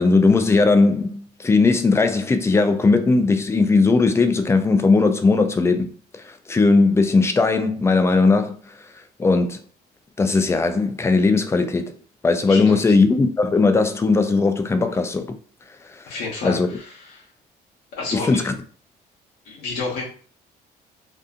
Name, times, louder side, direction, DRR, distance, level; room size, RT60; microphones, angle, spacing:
voice 1, 0.0-5.9 6.2-8.6 9.2-9.6 10.2-11.9 12.2-15.4 16.0-16.1 16.4-16.7 18.1-18.5, left 3 dB, 15° left, 0.3 m, -18 dB
voice 2, 12.5-12.8 16.1-17.2 17.9-18.4 19.4-20.0, left 3 dB, 85° left, 0.8 m, -30 dB
2.6 x 2.5 x 2.4 m
cardioid pair, 110°, 17 cm